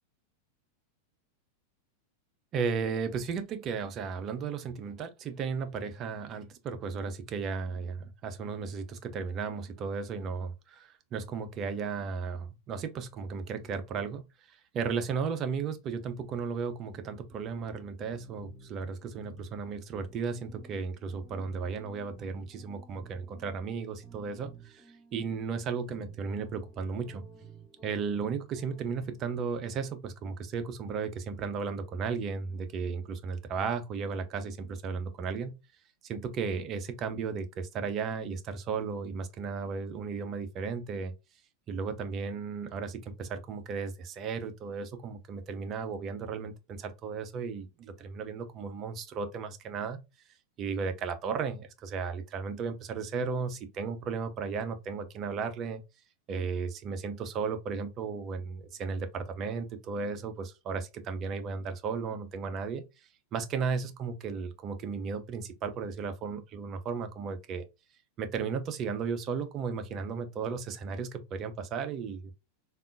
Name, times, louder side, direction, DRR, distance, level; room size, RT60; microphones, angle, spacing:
voice 1, 2.5-27.2 27.8-35.6 36.0-41.1 41.7-50.0 50.6-55.8 56.3-62.8 63.3-67.6 68.2-72.3, right 5 dB, 30° right, 0.5 m, -35 dB
sound 1, 17.3-29.7, right 4 dB, 15° left, 1.4 m, -54 dB
3.5 x 2.4 x 2.5 m
figure-of-eight pair, 90°, 0 cm